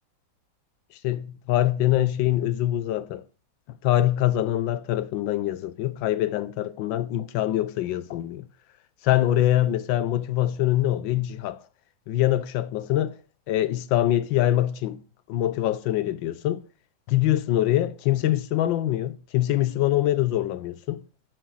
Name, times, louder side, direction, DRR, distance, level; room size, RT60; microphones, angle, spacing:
voice 1, 1.0-3.2 3.8-8.5 9.0-11.6 12.1-13.2 13.5-15.0 15.3-16.6 17.1-21.0, left 13 dB, 85° left, 1.4 m, -24 dB
7.8 x 6.5 x 4.7 m
omnidirectional pair, 2.0 m